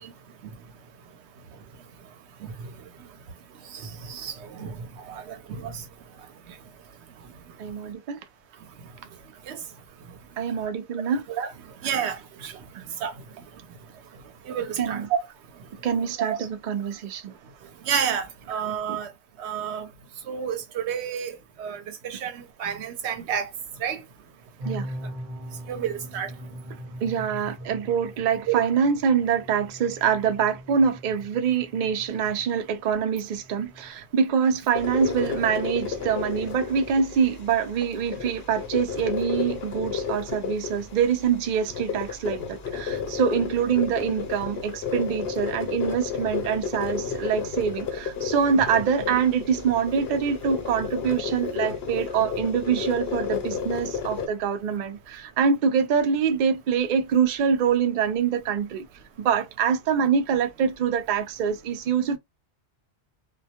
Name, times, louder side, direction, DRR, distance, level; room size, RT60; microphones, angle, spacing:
voice 1, 3.7-5.8 9.5-9.6 11.3-11.5 11.8-12.5 13.0-13.1 14.5-15.2 16.3-16.4 17.9-19.1 19.4-19.9 20.3-23.5 23.8-24.0 25.7-26.3 28.5-28.6 48.5-48.6, right 8 dB, 85° right, 0.9 m, -30 dB
voice 2, 7.6-8.2 10.4-11.2 12.7-12.8 14.8-15.1 15.8-17.3 24.6-24.9 27.0-58.9 59.2-62.2, right 7 dB, 60° right, 0.6 m, -25 dB
sound 1, 24.6-33.9, equal, 40° right, 0.9 m, -41 dB
sound 2, 34.7-54.3, left 6 dB, 70° left, 0.8 m, -32 dB
2.2 x 2.2 x 2.8 m
omnidirectional pair, 1.1 m